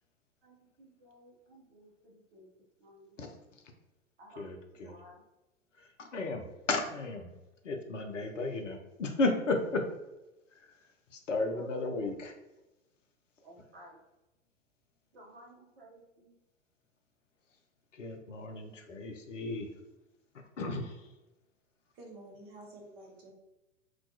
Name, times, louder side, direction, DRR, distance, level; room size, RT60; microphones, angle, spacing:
voice 1, 0.4-3.2 4.2-4.5 4.7-5.2 11.5-12.1 13.4-14.0 15.1-16.3, equal, 55° right, -2 dB, 0.7 m, -56 dB
voice 2, 3.2-3.6 4.4-4.9 5.7-7.3 7.6-9.8 10.5-12.3 17.9-19.7 20.3-21.1, left 3 dB, 80° left, 4 dB, 0.5 m, -34 dB
voice 3, 21.9-23.3, right 2 dB, 15° right, -2 dB, 0.4 m, -50 dB
2.3 x 2.2 x 2.6 m, 1.0 s
figure-of-eight pair, 100°, 37 cm